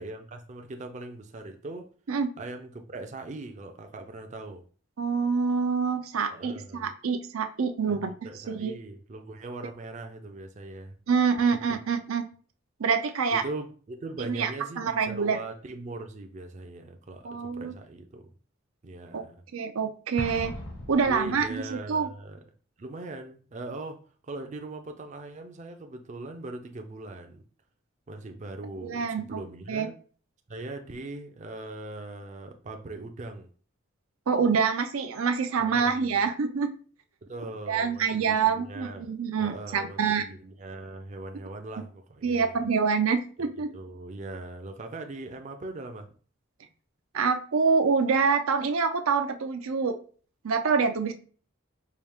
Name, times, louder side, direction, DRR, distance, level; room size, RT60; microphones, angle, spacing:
voice 1, 0.0-1.9 2.4-4.6 6.3-6.9 7.9-11.0 11.7-11.8 13.3-18.3 18.8-19.4 21.1-22.4 22.8-27.4 28.1-29.9 30.5-33.5 35.6-36.1 37.2-39.1 39.4-42.6 43.4-43.5 43.7-46.1, right 2 dB, 35° right, 5 dB, 0.4 m, -40 dB
voice 2, 5.0-8.1 8.4-8.7 11.1-12.2 12.8-13.4 14.2-14.5 14.8-15.4 17.2-17.7 19.1-19.2 19.5-20.5 20.9-22.1 28.8-29.4 29.7-29.9 34.3-36.7 37.7-40.2 42.2-43.7 47.1-50.0 50.4-51.1, right 5 dB, 90° right, 7 dB, 0.5 m, -26 dB
Explosion, 20.2-21.8, left 1 dB, 55° left, 1.0 m, -38 dB
4.7 x 2.4 x 3.5 m, 0.41 s
head